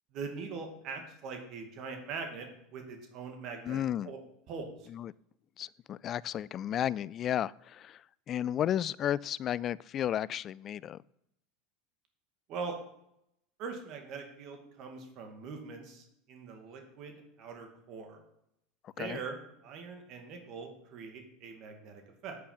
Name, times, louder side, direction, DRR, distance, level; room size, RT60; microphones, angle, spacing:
voice 1, 0.1-4.2 4.5-4.9 12.5-12.8 13.6-18.2 19.0-22.4, right 4 dB, 50° right, 4 dB, 2.4 m, -42 dB
voice 2, 3.7-4.1 4.9-5.1 5.6-8.0 8.3-11.0 19.0-19.2, left 10 dB, 40° left, 22 dB, 0.3 m, -33 dB
8.5 x 8.4 x 5.8 m, 0.77 s
hypercardioid pair, 100°, 0 cm